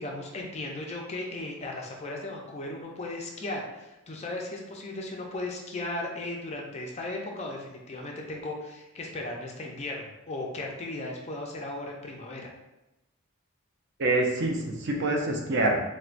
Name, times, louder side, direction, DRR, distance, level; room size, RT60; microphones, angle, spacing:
voice 1, 0.0-12.5, left 2 dB, 30° left, 0 dB, 0.4 m, -36 dB
voice 2, 14.0-15.9, right 2 dB, 50° right, 1 dB, 0.5 m, -26 dB
4.3 x 2.1 x 2.5 m, 0.98 s
head